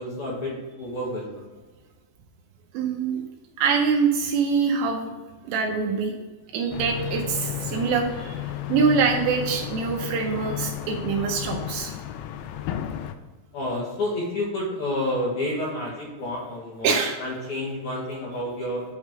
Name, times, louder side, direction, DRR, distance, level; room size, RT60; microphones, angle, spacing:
voice 1, 0.0-1.5 13.5-18.8, left 1 dB, 55° left, -6 dB, 2.4 m, -30 dB
voice 2, 2.7-3.2 3.6-5.1 5.4-6.1 6.5-12.0 16.8-17.2, right 5 dB, 80° right, 2 dB, 2.8 m, -24 dB
sound 1, 6.7-13.2, left 11 dB, 80° left, 2.6 m, -33 dB
8.2 x 3.6 x 6.1 m, 1.2 s
omnidirectional pair, 5.4 m